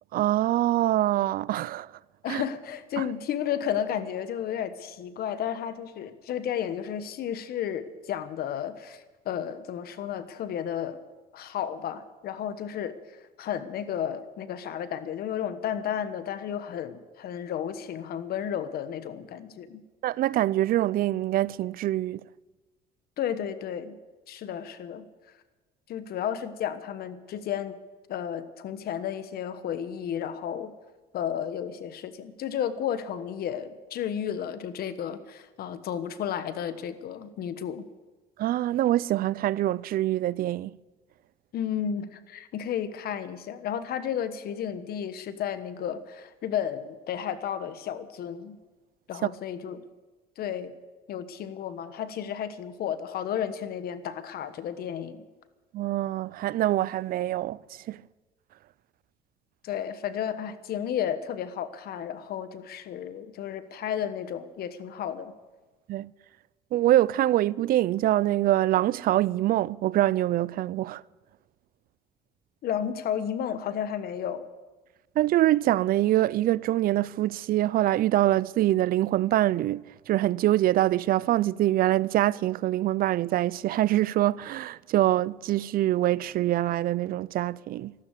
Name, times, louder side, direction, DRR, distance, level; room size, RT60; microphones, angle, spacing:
voice 1, 0.1-1.9 2.3-2.4 3.0-3.1 20.0-22.2 38.4-40.7 49.2-49.3 55.7-57.6 57.9-58.0 65.9-66.1 66.7-71.0 75.2-87.9, right 14 dB, 60° right, 0.4 m, -24 dB
voice 2, 2.2-11.0 11.3-13.0 13.4-19.8 23.2-24.0 24.3-25.1 25.9-27.8 28.1-30.7 31.1-37.8 41.5-48.6 49.1-49.8 50.4-50.7 51.1-55.2 59.6-65.3 72.6-74.5, left 9 dB, 65° left, 1.3 m, -32 dB
13.5 x 12.5 x 8.1 m
cardioid pair, 110°, 17 cm